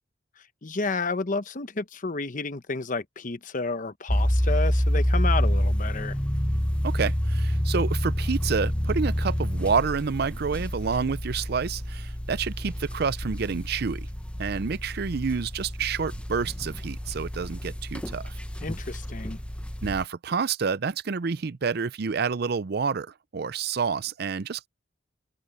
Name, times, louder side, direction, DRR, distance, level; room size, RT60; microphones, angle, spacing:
voice 1, 0.6-6.2 18.6-19.4, left 3 dB, 45° left, 1.0 m, -31 dB
sound 1, 4.1-20.0, equal, 5° left, 0.7 m, -28 dB
voice 2, 6.8-14.1 14.4-18.4 19.8-24.7, right 5 dB, 60° right, 0.5 m, -28 dB
head